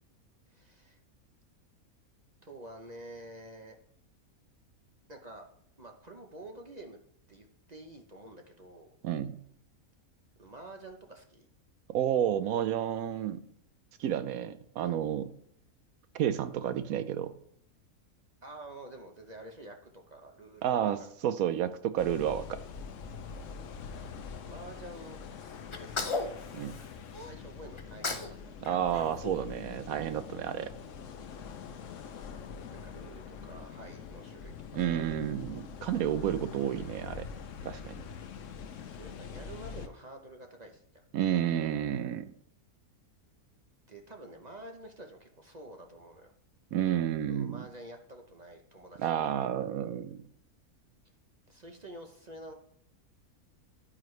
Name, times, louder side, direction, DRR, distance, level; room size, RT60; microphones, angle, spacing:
voice 1, 0.5-1.0 2.4-3.8 5.1-5.5 5.8-7.0 7.3-8.9 10.4-11.5 18.4-20.9 24.4-26.2 27.1-28.5 32.7-35.1 38.9-41.0 43.9-46.3 47.3-49.2 51.5-52.5, right 1 dB, 40° right, 3 dB, 0.7 m, -48 dB
voice 2, 9.0-9.4 11.9-13.4 14.0-15.3 16.1-17.3 20.6-21.0 21.2-22.6 26.6-26.8 28.6-30.7 34.7-37.3 37.6-37.9 41.1-42.3 46.7-47.6 49.0-50.2, right 10 dB, 75° right, 12 dB, 1.0 m, -30 dB
sound 1, 22.0-39.9, left 6 dB, 65° left, 1.0 m, -44 dB
Sneeze, 25.7-27.3 27.8-28.4 28.6-30.1, left 3 dB, 30° left, 0.5 m, -37 dB
10.0 x 9.1 x 3.2 m, 0.68 s
omnidirectional pair, 1.5 m